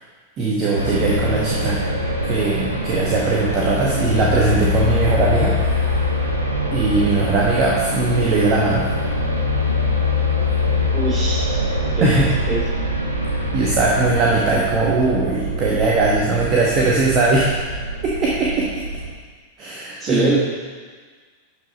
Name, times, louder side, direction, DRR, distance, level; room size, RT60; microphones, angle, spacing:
voice 1, 0.4-1.8 2.2-6.0 6.7-8.9 12.0-12.4 13.3-17.5 18.0-18.8 19.6-20.4, right 3 dB, 30° right, -4 dB, 1.4 m, -20 dB
sound 1, 0.7-19.1, left 2 dB, 85° right, 1.0 m, -23 dB
voice 2, 10.9-11.5 12.0-12.6 20.0-20.4, right 2 dB, 15° right, -4 dB, 3.0 m, -23 dB
11.5 x 5.4 x 4.2 m, 1.5 s
figure-of-eight pair, 90°, 0 cm